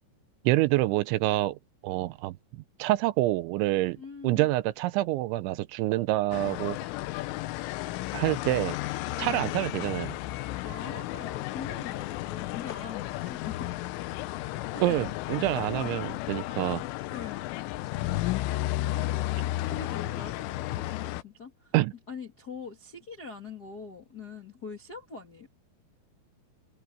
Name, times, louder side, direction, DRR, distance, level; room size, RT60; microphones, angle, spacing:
voice 1, 0.4-1.6 1.8-6.8 8.1-8.8 9.2-10.2 14.8-16.9 21.7-21.9, right 17 dB, 80° right, 2.9 m, -27 dB
voice 2, 3.9-4.5 9.2-9.4 10.6-13.7 14.7-15.1 15.7-16.0 17.1-17.5 18.9-19.2 19.6-21.7 22.1-25.5, left 5 dB, 45° left, 1.2 m, -43 dB
sound 1, 6.3-21.2, left 16 dB, 85° left, 3.3 m, -33 dB
omnidirectional pair, 5.6 m